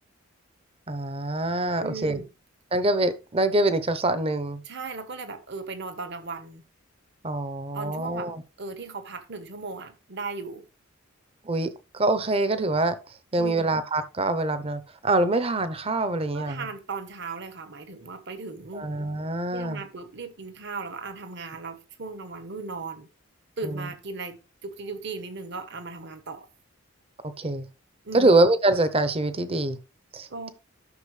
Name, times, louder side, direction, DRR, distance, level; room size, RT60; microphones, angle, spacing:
voice 1, 0.9-2.2 2.7-4.6 7.2-8.4 11.4-13.0 13.3-16.7 18.7-19.8 23.6-23.8 27.4-27.6 28.1-29.8 30.1-30.5, right 2 dB, 25° right, 0.8 m, -25 dB
voice 2, 1.8-2.3 4.6-6.6 7.7-8.3 8.6-10.7 13.4-13.7 16.3-18.9 19.5-23.1 23.6-26.5 28.0-28.3 30.3-30.5, right 4 dB, 55° right, 1.2 m, -37 dB
12.0 x 6.1 x 3.3 m
head